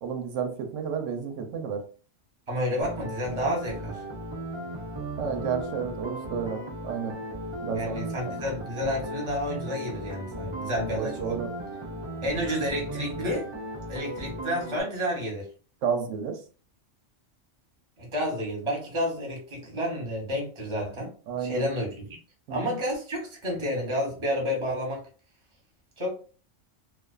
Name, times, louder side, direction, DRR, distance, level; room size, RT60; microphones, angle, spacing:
voice 1, 0.0-1.8 5.2-7.1 7.6-8.0 10.9-11.5 15.8-16.4 21.3-21.6 22.5-22.8, right 7 dB, 90° right, 5 dB, 0.9 m, -31 dB
voice 2, 2.5-4.0 7.7-11.4 12.2-13.5 13.9-15.5 18.0-21.1 21.4-22.2 22.5-25.0 26.0-26.1, equal, 25° right, -1 dB, 0.9 m, -30 dB
sound 1, 2.8-14.8, right 1 dB, 45° right, 0.3 m, -36 dB
2.4 x 2.3 x 2.3 m, 0.39 s
omnidirectional pair, 1.3 m